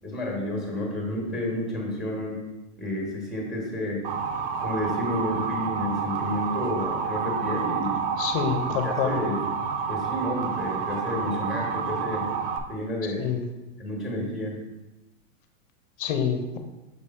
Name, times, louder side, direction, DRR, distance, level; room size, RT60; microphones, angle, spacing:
voice 1, 0.0-2.4 2.8-4.0 4.6-8.0 8.7-9.4 9.9-12.3 12.7-13.2 13.8-14.6, left 1 dB, ahead, -2 dB, 1.4 m, -30 dB
Motor vehicle (road) / Siren, 4.0-12.6, right 6 dB, 45° right, 0.6 m, -29 dB
voice 2, 8.2-9.2 13.2-13.4 16.0-16.6, left 7 dB, 40° left, 6 dB, 0.7 m, -27 dB
6.6 x 3.4 x 4.2 m, 1.0 s
supercardioid pair, 155°, 39 cm